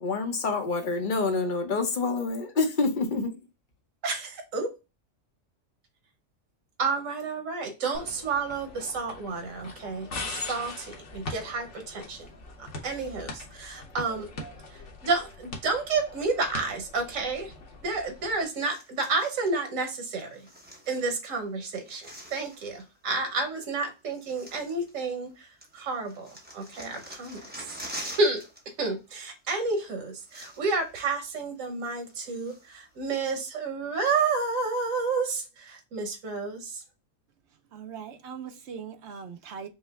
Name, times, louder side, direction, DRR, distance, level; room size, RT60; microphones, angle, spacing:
voice 1, 0.0-3.4, left 3 dB, 45° left, 0.8 m, -27 dB
voice 2, 4.0-4.7 6.8-12.3 12.6-14.3 14.7-17.5 17.8-20.4 20.9-27.6 28.0-36.8, right 3 dB, 85° right, 1.3 m, -30 dB
sound 1, 7.9-18.4, left 2 dB, 65° left, 1.3 m, -42 dB
sound 2, 18.5-19.5 20.3-21.4 21.6-22.9 23.7-23.8 24.1-25.3 25.6-28.6 28.9-29.1 29.8-29.9 30.1-30.9 31.2-31.3 31.8-32.8 33.3-33.4, right 1 dB, 10° right, 0.7 m, -45 dB
voice 3, 37.7-39.7, right 7 dB, 65° right, 0.9 m, -40 dB
5.4 x 2.1 x 3.4 m
omnidirectional pair, 1.3 m